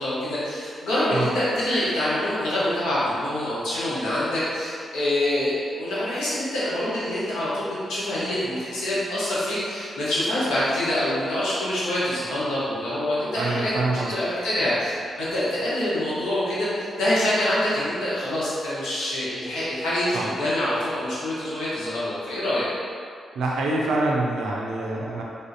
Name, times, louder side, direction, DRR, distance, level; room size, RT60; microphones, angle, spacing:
voice 1, 0.0-14.9 15.2-22.6, left 1 dB, 90° left, -10 dB, 0.9 m, -25 dB
voice 2, 13.4-14.1 20.1-20.3 23.4-25.2, right 2 dB, 85° right, -2 dB, 0.4 m, -25 dB
3.5 x 2.5 x 2.7 m, 2.3 s
cardioid pair, 65°, 0 cm